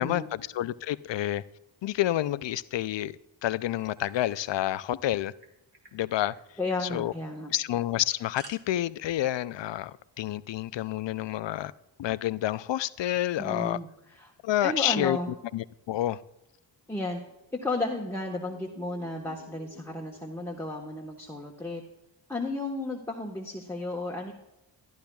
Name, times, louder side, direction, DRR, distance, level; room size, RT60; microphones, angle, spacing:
voice 1, 0.0-1.4 1.8-5.3 5.9-6.3 6.8-7.1 7.5-11.7 12.0-13.8 14.4-15.2 15.5-16.2, left 13 dB, 65° left, 16 dB, 0.5 m, -29 dB
sound 1, 3.7-4.8 5.0-5.1 5.4-5.9 6.2-6.4 6.7-6.9 7.8-8.5, right 3 dB, 50° right, 2.3 m, -51 dB
voice 2, 6.6-7.5 13.4-14.3 14.6-15.3 16.9-17.2 17.5-21.8 22.3-24.3, left 2 dB, 5° left, -1 dB, 1.2 m, -33 dB
sound 2, 17.3-21.2, equal, 80° right, 3.1 m, -54 dB
14.0 x 11.5 x 2.3 m, 0.92 s
cardioid pair, 70°, 47 cm